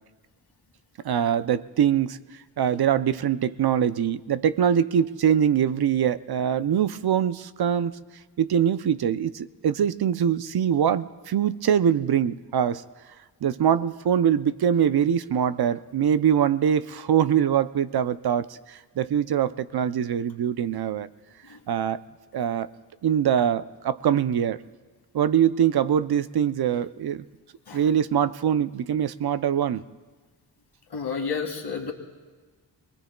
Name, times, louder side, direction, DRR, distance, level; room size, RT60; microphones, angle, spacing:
voice 1, 1.0-2.2 2.6-8.0 8.4-12.8 13.4-21.1 21.7-22.0 22.3-22.7 23.0-24.6 25.1-27.2 27.7-29.8, right 9 dB, 65° right, 14 dB, 0.5 m, -23 dB
voice 2, 30.9-31.9, left 5 dB, 75° left, 2 dB, 2.0 m, -31 dB
27.0 x 20.5 x 2.2 m, 1.4 s
cardioid pair, 65°, 41 cm